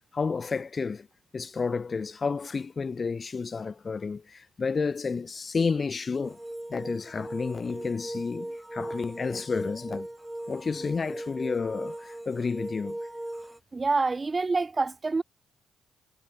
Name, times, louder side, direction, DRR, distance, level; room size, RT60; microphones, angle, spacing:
voice 1, 0.1-1.1 1.3-6.4 6.7-10.1 10.5-13.0, left 5 dB, 40° left, 5.7 m, -31 dB
sound 1, 6.2-13.6, right 1 dB, 10° right, 7.2 m, -39 dB
voice 2, 13.7-15.2, right 3 dB, 30° right, 2.3 m, -26 dB
hypercardioid pair, 45°, 0 cm